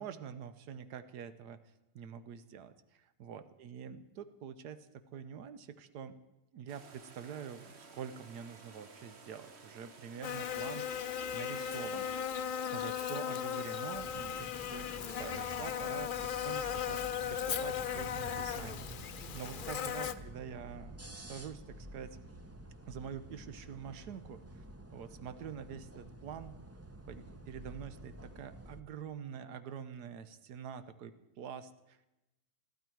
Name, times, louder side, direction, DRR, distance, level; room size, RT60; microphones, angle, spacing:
voice 1, 0.0-1.6 1.9-6.2 6.5-12.1 12.7-18.8 19.3-22.2 22.8-24.6 24.9-26.6 27.1-32.1, right 8 dB, 85° right, 12 dB, 1.4 m, -46 dB
sound 1, 6.7-12.2, right 4 dB, 45° right, 1.4 m, -55 dB
Buzz, 10.2-20.1, left 9 dB, 60° left, 0.5 m, -37 dB
sound 2, 13.9-28.8, right 1 dB, 20° right, 0.3 m, -50 dB
21.5 x 14.0 x 4.6 m, 0.96 s
omnidirectional pair, 1.7 m